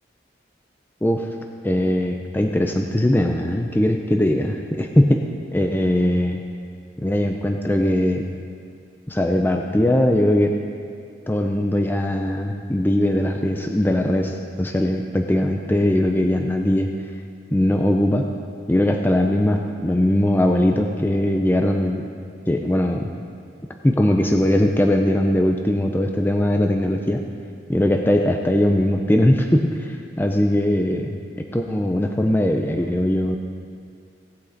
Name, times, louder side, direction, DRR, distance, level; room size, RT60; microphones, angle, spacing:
voice 1, 1.6-5.2 5.5-6.4 7.0-8.2 9.1-10.6 11.3-16.9 17.5-18.3 18.7-22.1 22.5-23.1 23.8-27.2 27.7-31.1 31.5-33.4, left 1 dB, 10° left, 3 dB, 0.5 m, -20 dB
17.5 x 8.3 x 4.0 m, 2.2 s
head